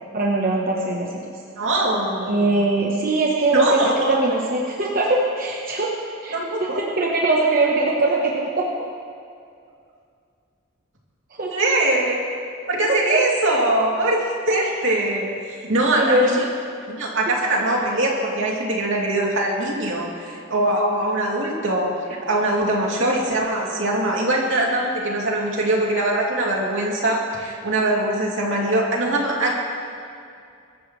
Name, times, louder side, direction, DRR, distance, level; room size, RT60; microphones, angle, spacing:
voice 1, 0.1-1.1 2.3-5.9 6.2-8.8 11.4-11.5 12.9-13.2 16.0-16.4, right 2 dB, 45° right, -3 dB, 1.2 m, -21 dB
voice 2, 1.6-2.5 3.5-4.1 6.3-6.8 11.5-12.2 12.7-15.3 15.6-16.4 16.9-21.9 22.3-29.6, right 1 dB, 75° right, -3 dB, 2.9 m, -22 dB
22.5 x 13.5 x 3.3 m, 2.4 s
head